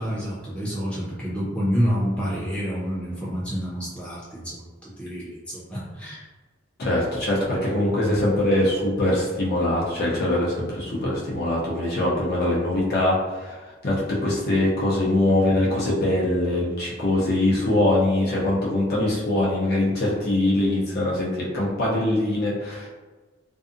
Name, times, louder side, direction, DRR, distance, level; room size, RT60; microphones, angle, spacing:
voice 1, 0.0-6.2, equal, 5° left, -8 dB, 0.8 m, -28 dB
voice 2, 6.8-13.6 13.8-22.9, left 1 dB, 50° left, -5 dB, 0.6 m, -23 dB
2.6 x 2.3 x 2.5 m, 1.3 s
head